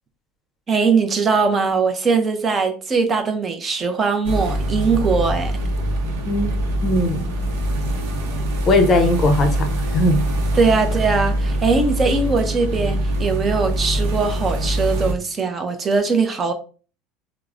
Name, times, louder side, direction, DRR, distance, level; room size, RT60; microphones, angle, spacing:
voice 1, 0.7-5.5 10.5-16.5, right 4 dB, 20° right, 0.5 m, -20 dB
sound 1, 4.2-15.1, right 1 dB, 85° right, 0.6 m, -23 dB
voice 2, 6.8-7.3 8.7-9.7 9.9-10.2, left 1 dB, 30° left, 0.6 m, -18 dB
4.5 x 2.0 x 2.4 m
cardioid pair, 150°, 0 cm